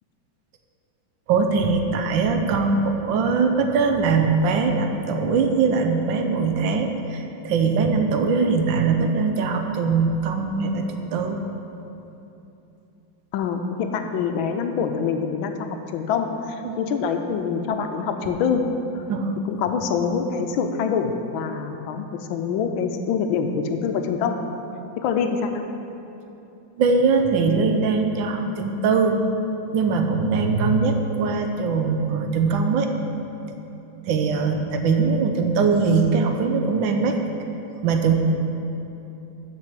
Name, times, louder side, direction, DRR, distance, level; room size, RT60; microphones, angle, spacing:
voice 1, 1.3-11.4 16.6-16.8 19.1-19.4 26.8-29.2 29.7-32.9 34.0-37.2 37.8-38.2, right 4 dB, 75° right, 5 dB, 1.3 m, -21 dB
voice 2, 13.3-15.5 15.9-18.6 18.9-19.0 19.5-24.4 25.0-25.6, left 6 dB, 80° left, 6 dB, 1.3 m, -25 dB
7.5 x 5.3 x 7.5 m, 2.9 s
omnidirectional pair, 2.2 m